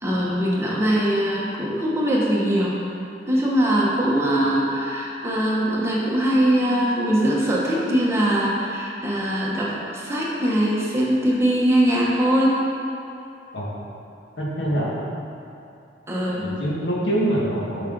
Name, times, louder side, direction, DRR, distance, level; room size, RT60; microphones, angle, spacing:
voice 1, 0.0-2.8 3.3-12.6 16.1-16.5, right 1 dB, 15° right, -5 dB, 1.1 m, -21 dB
voice 2, 14.4-14.9 16.4-17.9, right 1 dB, 90° left, -5 dB, 1.6 m, -24 dB
8.2 x 5.8 x 3.9 m, 2.6 s
head